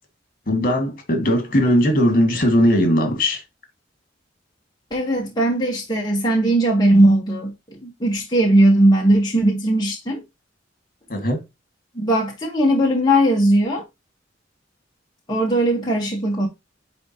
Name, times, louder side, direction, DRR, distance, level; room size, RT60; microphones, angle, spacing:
voice 1, 0.5-3.4 11.1-11.4, equal, 50° left, 2.2 m, -18 dB
voice 2, 4.9-10.2 11.9-13.8 15.3-16.5, right 1 dB, 20° left, 1.4 m, -18 dB
10.0 x 3.6 x 3.0 m
head